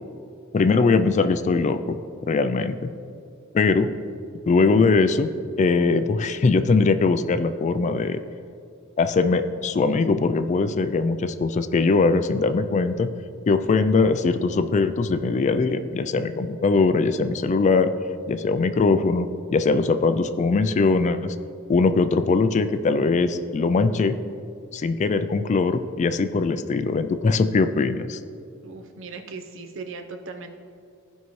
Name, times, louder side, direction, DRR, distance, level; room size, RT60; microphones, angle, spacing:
voice 1, 0.5-2.0 2.3-2.9 3.5-3.9 4.5-5.3 5.6-8.2 9.0-13.1 13.5-17.9 18.3-21.4 21.7-24.2 24.7-28.2, left 4 dB, 35° left, 10 dB, 0.3 m, -21 dB
voice 2, 28.6-30.6, right 4 dB, 65° right, 4 dB, 0.8 m, -38 dB
15.0 x 5.5 x 3.1 m, 2.5 s
head